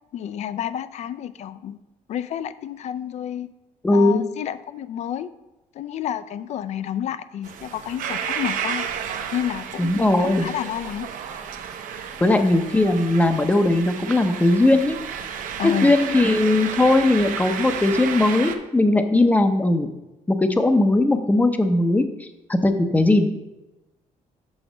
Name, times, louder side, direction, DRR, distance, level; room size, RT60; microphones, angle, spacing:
voice 1, 0.1-1.8 2.1-3.5 3.9-5.3 5.7-8.9 9.3-11.1 15.6-15.9, left 10 dB, 55° left, 14 dB, 0.4 m, -30 dB
voice 2, 3.8-4.2 9.8-10.5 12.2-15.0 15.6-19.9 20.3-23.4, left 2 dB, 10° left, 8 dB, 0.6 m, -19 dB
sound 1, 7.4-18.6, right 8 dB, 75° right, 0.7 m, -32 dB
6.3 x 5.8 x 5.0 m, 1.0 s
cardioid pair, 140°, 14 cm